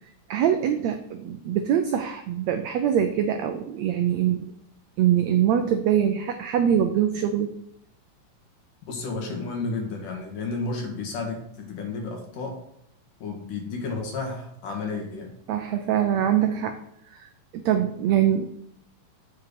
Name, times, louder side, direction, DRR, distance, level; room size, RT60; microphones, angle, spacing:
voice 1, 0.3-4.5 5.0-7.6 15.5-16.8 17.1-18.5, right 9 dB, 90° right, 7 dB, 1.5 m, -23 dB
voice 2, 8.9-12.6 13.2-15.3, left 3 dB, 70° left, 1 dB, 3.4 m, -32 dB
7.8 x 5.6 x 6.8 m, 0.73 s
omnidirectional pair, 3.9 m